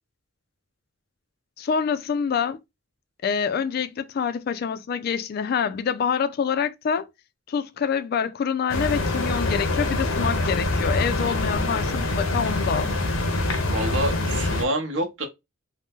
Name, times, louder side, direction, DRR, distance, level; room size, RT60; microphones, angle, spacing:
voice 1, 1.6-2.6 3.2-7.1 7.5-12.9, left 6 dB, 50° left, 0.3 m, -26 dB
sound 1, 8.7-14.6, left 2 dB, 85° left, 0.6 m, -25 dB
voice 2, 13.7-15.3, right 1 dB, 70° right, 0.8 m, -27 dB
2.7 x 2.0 x 3.5 m
head